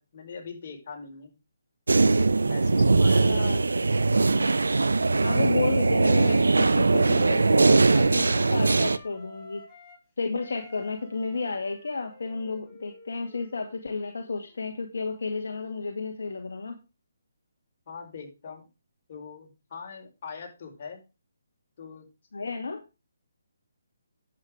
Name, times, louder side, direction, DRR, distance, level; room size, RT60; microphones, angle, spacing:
voice 1, 0.0-1.3 2.4-3.5 17.9-18.7 19.1-21.0 21.8-22.1, left 5 dB, 45° left, 1 dB, 4.7 m, -42 dB
sound 1, 1.9-9.0, right 3 dB, 80° right, 0.8 m, -21 dB
voice 2, 3.2-3.6 5.2-9.6 10.2-16.8 22.3-22.8, left 4 dB, 70° left, 4 dB, 1.9 m, -32 dB
Wind instrument woodwind instrument, 6.7-10.0 10.3-14.8, left 1 dB, 15° left, 4.5 m, -52 dB
10.5 x 7.9 x 4.9 m, 0.28 s
figure-of-eight pair, 145°, 0 cm